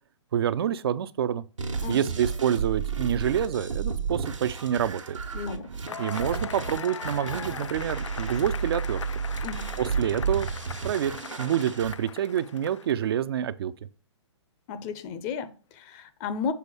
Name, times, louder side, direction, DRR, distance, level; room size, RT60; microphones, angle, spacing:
voice 1, 0.3-1.4 1.9-5.2 6.0-9.0 9.8-10.5 10.8-13.7, right 9 dB, 55° right, 0.5 m, -27 dB
sound 1, 1.6-11.9, right 5 dB, 85° right, 1.3 m, -32 dB
voice 2, 1.8-2.1 5.3-5.7 9.4-9.7 14.7-16.5, left 5 dB, 30° left, 0.6 m, -34 dB
Cheering / Applause / Crowd, 5.9-13.1, left 7 dB, 75° left, 0.4 m, -40 dB
6.9 x 4.1 x 4.8 m
figure-of-eight pair, 125°, 16 cm